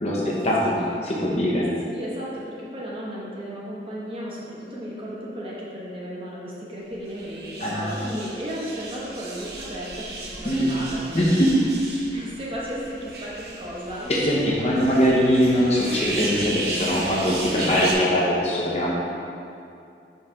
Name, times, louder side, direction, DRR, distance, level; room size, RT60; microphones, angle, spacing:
voice 1, 0.0-1.7 7.6-8.0 10.4-10.8 11.1-11.8 14.1-19.0, equal, 35° left, -4 dB, 0.8 m, -22 dB
voice 2, 1.9-11.3 12.1-14.1, equal, 30° right, -6 dB, 0.9 m, -34 dB
sound 1, 7.1-17.9, right 2 dB, 60° right, 0.7 m, -35 dB
5.4 x 3.2 x 5.6 m, 2.5 s
head